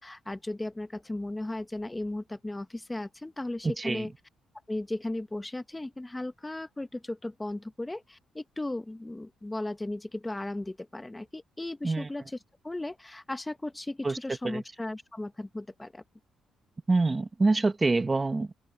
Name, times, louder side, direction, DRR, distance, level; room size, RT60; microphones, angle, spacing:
voice 1, 0.0-4.1 4.7-12.4 12.6-16.0, left 2 dB, 15° left, 1.4 m, -36 dB
voice 2, 3.6-4.1 11.8-12.1 14.0-14.2 14.4-14.6 16.9-18.5, right 3 dB, 25° right, 1.5 m, -26 dB
open air
cardioid pair, 90°, 0 cm